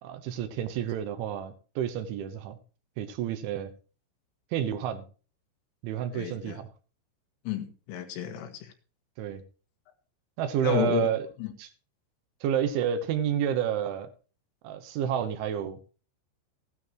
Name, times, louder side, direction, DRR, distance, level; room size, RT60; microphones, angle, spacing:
voice 1, 0.0-2.6 3.0-3.7 4.5-5.0 5.8-6.7 9.2-9.4 10.4-11.3 11.6-11.7 12.4-14.1 14.6-15.8, right 9 dB, 75° right, 10 dB, 3.4 m, -30 dB
voice 2, 6.1-6.6 7.5-8.7 10.6-11.1 11.4-11.5, left 8 dB, 80° left, 6 dB, 4.1 m, -31 dB
15.5 x 12.5 x 3.1 m, 0.37 s
omnidirectional pair, 5.7 m